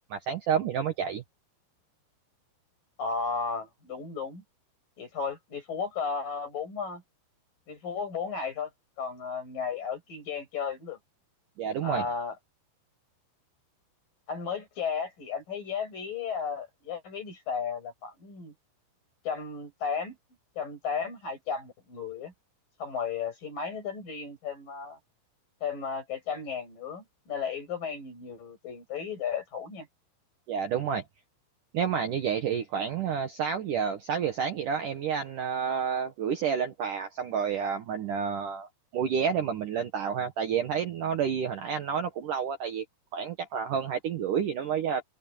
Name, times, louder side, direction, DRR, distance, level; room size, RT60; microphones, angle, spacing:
voice 1, 0.1-1.2 11.6-12.1 30.5-31.0 31.7-38.7 38.9-42.8 43.1-45.0, right 7 dB, 85° right, 1.8 m, -29 dB
voice 2, 3.0-4.4 5.0-7.0 7.7-8.7 9.0-11.0 11.8-12.4 14.3-18.5 19.2-20.2 20.6-22.3 22.8-25.0 25.6-29.9, left 6 dB, 40° left, 9.3 m, -34 dB
omnidirectional pair, 6.0 m